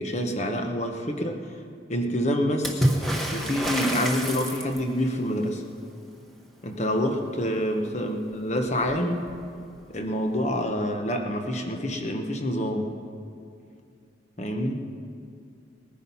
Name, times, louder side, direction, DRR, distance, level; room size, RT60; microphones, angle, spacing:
voice 1, 0.0-1.5 1.9-2.9 3.3-5.6 6.6-9.3 9.9-12.9 14.4-14.8, equal, 35° left, 4 dB, 1.2 m, -27 dB
Water / Splash splatter, 2.6-5.0 8.3-8.4 8.7-9.4 10.5-10.6, right 1 dB, ahead, 1.4 m, -27 dB
19.5 x 10.0 x 5.7 m, 2.4 s
head